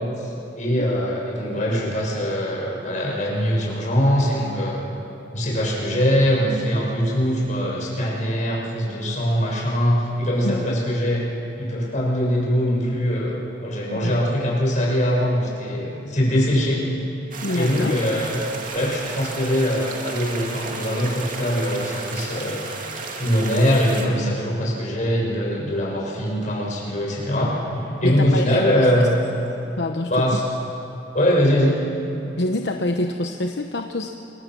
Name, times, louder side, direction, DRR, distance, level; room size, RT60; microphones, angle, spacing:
voice 1, 0.0-4.8 5.3-11.2 11.6-13.4 13.6-16.9 17.5-18.4 18.7-22.6 23.2-29.1 30.1-30.4 31.1-31.8, equal, 45° left, -3 dB, 6.3 m, -22 dB
voice 2, 10.4-10.8 13.9-14.2 17.4-18.0 28.0-28.9 29.8-30.4 32.4-34.1, left 1 dB, 65° left, 5 dB, 0.9 m, -26 dB
sound 1, 17.3-24.1, right 3 dB, 45° right, 2.5 m, -33 dB
27.5 x 22.5 x 6.2 m, 3.0 s
head